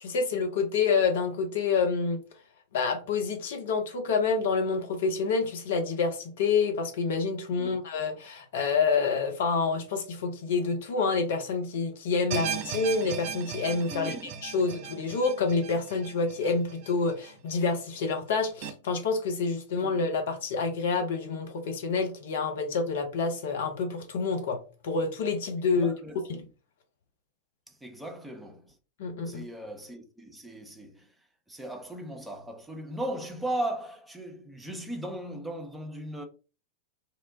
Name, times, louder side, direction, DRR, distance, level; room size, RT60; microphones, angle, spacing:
voice 1, 0.0-2.2 2.7-14.1 14.4-24.6 24.8-25.9 26.3-26.4 29.0-29.4, left 4 dB, 55° left, 0.6 m, -28 dB
sound 1, 12.3-17.5 17.9-18.0 18.6-18.7, right 7 dB, 45° right, 0.4 m, -37 dB
voice 2, 13.9-14.3 19.8-20.0 25.7-26.3 27.7-28.8 29.3-31.1 31.5-36.2, right 1 dB, 5° right, 0.6 m, -37 dB
3.0 x 2.1 x 2.5 m
figure-of-eight pair, 90°, 0 cm